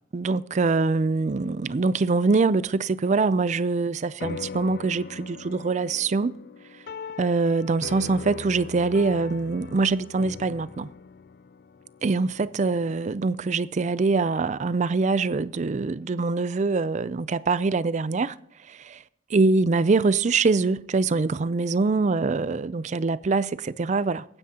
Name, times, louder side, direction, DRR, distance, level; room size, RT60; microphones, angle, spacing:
voice 1, 0.1-6.3 7.2-10.9 12.0-18.4 18.7-19.0 19.3-24.3, right 3 dB, 40° right, 0.4 m, -24 dB
sound 1, 4.2-12.9, left 5 dB, 55° left, 0.4 m, -41 dB
22.5 x 9.7 x 2.9 m
head